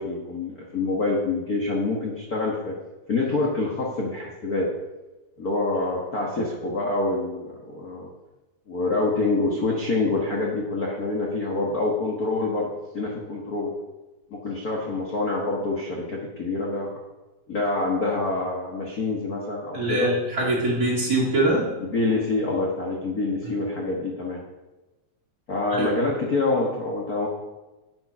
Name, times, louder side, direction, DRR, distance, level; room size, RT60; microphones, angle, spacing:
voice 1, 0.0-2.7 3.1-4.7 5.4-8.1 8.7-13.7 14.3-16.9 17.5-20.1 21.8-24.4 25.5-27.3, left 3 dB, 45° left, -2 dB, 1.3 m, -26 dB
voice 2, 19.7-21.7 25.7-25.9, right 1 dB, 30° right, -5 dB, 2.6 m, -23 dB
9.2 x 7.9 x 5.6 m, 1.1 s
omnidirectional pair, 3.6 m